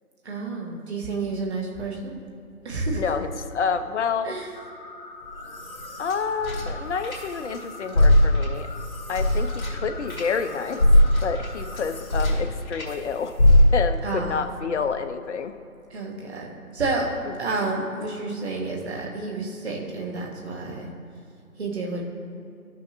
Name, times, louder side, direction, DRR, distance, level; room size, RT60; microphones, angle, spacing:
voice 1, 0.2-2.2 2.6-3.1 4.2-4.5 14.0-14.4 15.9-16.5 16.7-17.1 17.4-20.9 21.6-22.0, right 3 dB, 45° right, 0 dB, 1.4 m, -30 dB
voice 2, 2.9-4.3 6.0-8.7 9.1-10.8 11.2-13.3 13.7-15.5, left 6 dB, 50° left, 9 dB, 0.5 m, -28 dB
sound 1, 4.5-11.9, left 2 dB, 30° left, 0.9 m, -42 dB
sound 2, 5.2-7.6 7.9-12.9 13.4-14.1, left 1 dB, 70° left, 1.8 m, -21 dB
12.0 x 6.2 x 2.9 m, 2.5 s
figure-of-eight pair, 155°, 45 cm